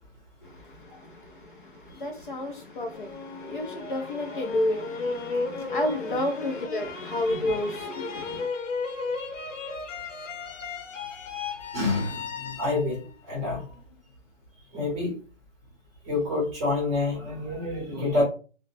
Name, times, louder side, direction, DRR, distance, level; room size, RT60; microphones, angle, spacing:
voice 1, 0.4-8.5, left 1 dB, 45° left, 0.4 m, -31 dB
sound 1, 2.9-14.0, left 4 dB, 80° left, 0.9 m, -35 dB
voice 2, 11.7-13.0 13.3-13.6 14.7-15.2 16.1-18.2, left 2 dB, 15° right, 0.8 m, -28 dB
2.8 x 2.1 x 2.6 m
hypercardioid pair, 160°, 37 cm